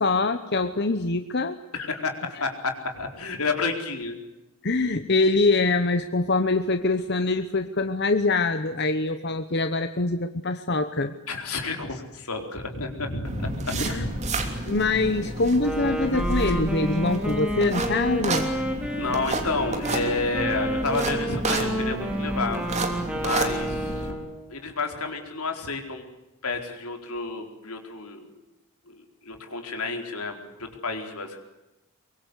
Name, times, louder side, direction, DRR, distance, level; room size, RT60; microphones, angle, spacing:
voice 1, 0.0-1.6 4.6-11.1 13.8-14.1 14.7-18.5, left 3 dB, 50° left, 9 dB, 1.0 m, -24 dB
voice 2, 1.7-4.2 11.3-14.5 19.0-22.6 23.1-24.2 24.5-26.1 26.4-28.4 28.9-31.4, left 3 dB, 80° left, 4 dB, 4.3 m, -30 dB
sound 1, 13.2-24.1, right 2 dB, 30° right, 3.1 m, -31 dB
Wind instrument woodwind instrument, 15.5-24.4, right 1 dB, 5° right, 4.2 m, -30 dB
24.0 x 23.5 x 8.3 m, 1.0 s
head